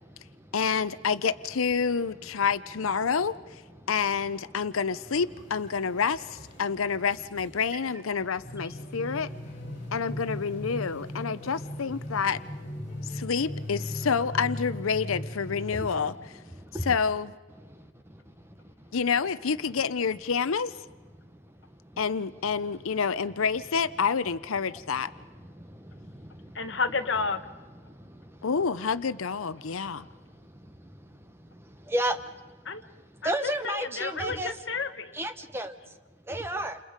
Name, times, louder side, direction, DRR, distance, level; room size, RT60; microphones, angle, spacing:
voice 1, 0.0-0.5 3.8-3.9 4.6-4.8 8.6-9.9 10.7-10.8 11.4-11.5 12.8-13.3 15.6-16.1 16.4-17.0 17.6-19.0 21.2-22.0 24.7-24.9 25.1-26.8 27.8-28.5 29.6-30.5 31.1-34.6 35.1-36.0 36.3-36.8, right 1 dB, 10° right, 8 dB, 1.1 m, -37 dB
voice 2, 0.5-3.6 3.9-9.3 9.9-12.4 13.0-16.3 16.9-17.3 18.9-20.8 22.0-25.1 28.4-30.1, left 6 dB, 80° left, 14 dB, 0.6 m, -28 dB
sound 1, 4.9-16.1, left 1 dB, 35° left, 7.3 m, -39 dB
voice 3, 26.5-27.4 32.6-32.8 33.2-35.2, left 4 dB, 55° left, 8 dB, 1.4 m, -31 dB
29.5 x 27.5 x 5.1 m, 1.4 s
head